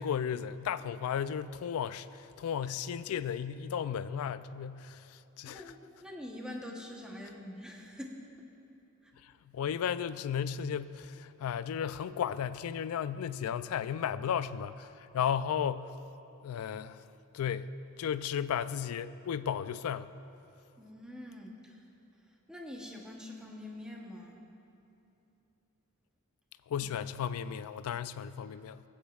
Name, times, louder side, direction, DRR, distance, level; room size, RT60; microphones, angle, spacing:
voice 1, 0.0-5.6 9.2-15.9 16.4-17.0 17.3-17.7 18.0-20.1 26.7-28.8, left 8 dB, 85° left, 0.3 m, -34 dB
voice 2, 5.4-8.5 9.0-9.1 20.8-21.8 22.5-24.4 26.8-26.9, left 1 dB, 5° right, 0.9 m, -45 dB
18.5 x 8.9 x 2.4 m
head